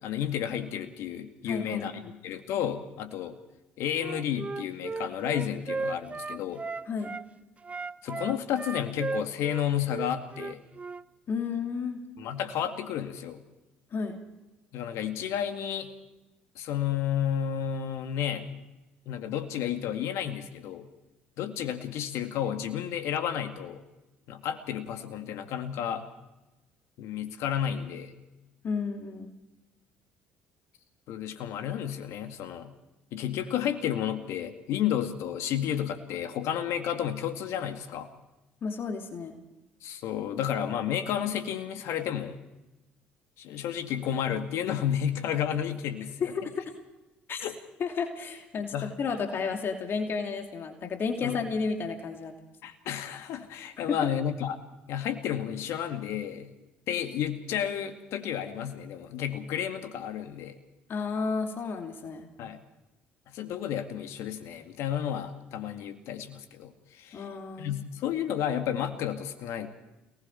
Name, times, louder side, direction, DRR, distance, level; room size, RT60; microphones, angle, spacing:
voice 1, 0.0-1.9 2.2-3.4 3.8-6.6 8.0-10.6 12.2-13.4 14.7-15.9 16.6-18.6 19.1-20.9 21.4-23.8 24.3-26.1 27.0-28.1 31.1-32.7 33.1-38.1 39.8-42.4 43.4-46.2 47.4-47.6 48.7-49.2 51.2-51.4 52.6-54.6 54.9-56.5 56.9-60.6 62.4-62.6 63.3-67.3 67.6-69.7, left 9 dB, 65° left, 7 dB, 2.1 m, -32 dB
voice 2, 1.5-2.1 6.9-7.1 11.3-12.0 13.9-14.2 28.6-29.4 38.6-39.4 46.2-46.5 47.3-47.4 47.8-52.3 53.9-54.1 60.9-62.3 67.1-67.7, left 5 dB, 45° left, 4 dB, 2.9 m, -32 dB
Wind instrument woodwind instrument, 4.0-7.3 7.6-11.0, right 4 dB, 25° right, 0.6 m, -36 dB
29.0 x 19.5 x 4.6 m, 1.0 s
hypercardioid pair, 55°, 5 cm